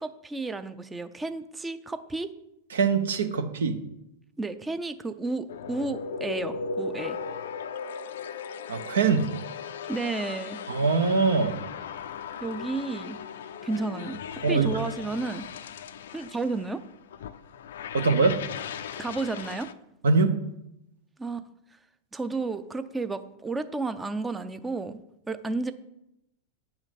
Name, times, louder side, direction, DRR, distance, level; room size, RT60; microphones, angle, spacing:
voice 1, 0.0-2.3 4.4-7.2 9.9-10.6 12.4-13.2 13.6-15.4 16.1-16.8 19.0-19.7 21.2-21.4 22.1-25.0 25.3-25.7, right 3 dB, 10° right, 11 dB, 0.5 m, -32 dB
voice 2, 2.7-3.8 8.7-9.3 10.7-11.6 14.4-14.8 17.9-18.4 20.0-20.4, right 4 dB, 65° right, 9 dB, 0.7 m, -23 dB
sound 1, 5.5-19.7, left 6 dB, 60° left, 0.4 m, -37 dB
9.6 x 5.8 x 4.2 m, 0.84 s
figure-of-eight pair, 90°, 0 cm